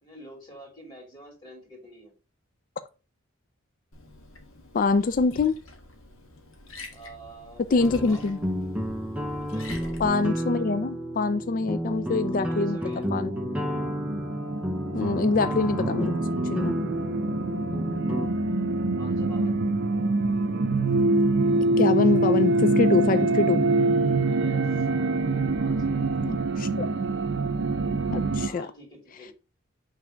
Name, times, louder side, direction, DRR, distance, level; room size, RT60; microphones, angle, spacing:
voice 1, 0.0-2.1 6.9-8.2 9.5-10.0 12.3-13.1 19.0-19.6 24.3-24.9 25.6-26.0 28.5-29.3, right 1 dB, 20° left, 2.7 m, -47 dB
Liquid, 3.9-10.1, left 2 dB, 75° left, 1.3 m, -45 dB
voice 2, 4.7-5.6 7.7-8.4 10.0-12.8 13.1-13.4 14.9-16.1 16.5-16.8 21.8-23.6 26.2-26.9 28.1-28.7, left 3 dB, 40° left, 0.4 m, -24 dB
sound 1, 7.8-18.3, equal, 5° right, 0.6 m, -31 dB
sound 2, 13.3-28.5, right 2 dB, 55° right, 0.6 m, -25 dB
5.6 x 3.4 x 5.0 m
head